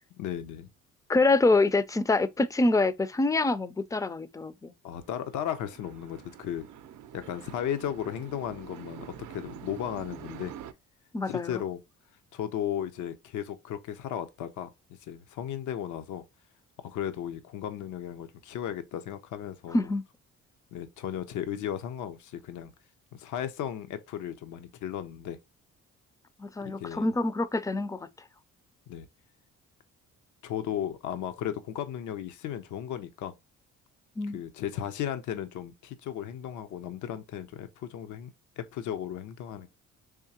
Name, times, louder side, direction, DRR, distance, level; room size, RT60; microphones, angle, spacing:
voice 1, 0.2-0.7 4.8-6.7 7.1-10.5 11.3-11.8 12.3-16.2 16.8-19.9 20.7-22.7 23.1-25.4 26.6-27.1 28.9-29.1 30.4-33.3 34.3-39.7, left 10 dB, 80° left, 0.6 m, -35 dB
voice 2, 1.1-4.7 11.1-11.6 19.7-20.0 26.4-28.1 34.2-34.4, left 2 dB, 10° left, 0.4 m, -26 dB
sound 1, 5.0-10.7, right 9 dB, 75° right, 0.5 m, -46 dB
3.6 x 3.1 x 2.8 m
cardioid pair, 90°, 30 cm